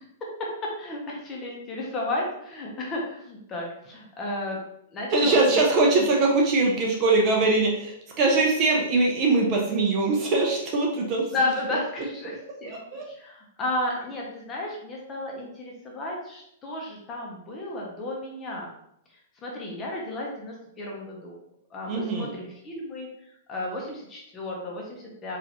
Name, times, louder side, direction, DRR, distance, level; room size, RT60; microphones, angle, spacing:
voice 1, 0.8-4.6 4.9-5.6 11.3-12.8 13.1-18.7 19.4-21.3 21.7-23.1 23.5-25.4, left 2 dB, 20° left, -2 dB, 0.8 m, -33 dB
voice 2, 5.1-11.3 12.7-13.0 21.9-22.3, right 3 dB, 30° right, 0 dB, 0.6 m, -22 dB
4.1 x 2.6 x 2.9 m, 0.75 s
hypercardioid pair, 165°, 0 cm